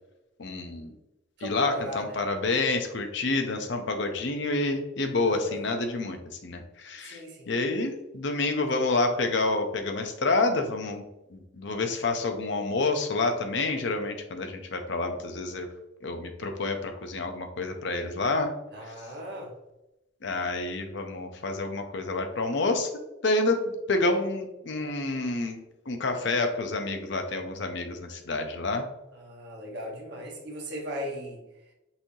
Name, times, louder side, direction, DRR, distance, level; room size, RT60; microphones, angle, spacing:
voice 1, 0.4-0.9 1.4-7.2 7.5-11.0 11.3-15.7 16.0-18.5 20.2-22.9 23.2-25.6 25.9-28.9, left 3 dB, 60° left, 5 dB, 0.6 m, -28 dB
voice 2, 1.4-2.3 5.2-5.6 7.0-7.5 18.7-19.5 29.1-31.4, equal, 55° right, -1 dB, 1.2 m, -38 dB
5.6 x 3.1 x 2.7 m, 0.94 s
head